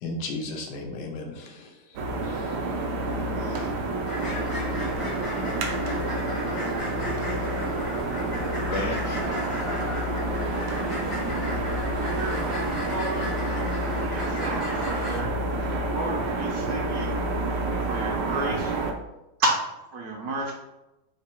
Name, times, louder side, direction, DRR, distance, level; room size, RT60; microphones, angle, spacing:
voice 1, 0.0-2.6, left 2 dB, 90° left, 3 dB, 1.3 m, -36 dB
sound 1, 2.0-18.9, right 2 dB, 90° right, 1.2 m, -28 dB
voice 2, 3.1-3.7 6.4-7.4 8.6-9.2, left 2 dB, 70° left, -2 dB, 1.3 m, -36 dB
sound 2, 4.1-15.2, left 1 dB, 35° left, 0.5 m, -36 dB
voice 3, 11.3-11.7 12.1-13.3 14.0-15.3 15.9-17.1 17.9-18.8 19.4-19.6 19.9-20.5, right 2 dB, 70° right, -1 dB, 1.1 m, -31 dB
3.9 x 2.2 x 4.2 m, 0.94 s
omnidirectional pair, 1.8 m